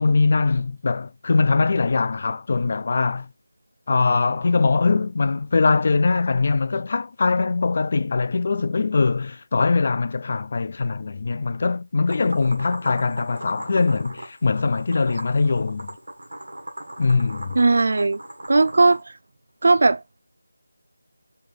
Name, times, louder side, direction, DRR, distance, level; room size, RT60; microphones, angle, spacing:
voice 1, 0.0-3.3 3.9-15.9 17.0-17.6, left 4 dB, 40° left, 0.3 m, -22 dB
sound 1, 12.1-19.0, right 1 dB, 90° right, 1.4 m, -39 dB
voice 2, 17.6-18.2 18.5-19.1 19.6-20.0, right 3 dB, 60° right, 0.3 m, -17 dB
3.3 x 3.1 x 3.6 m
figure-of-eight pair, 170°, 0 cm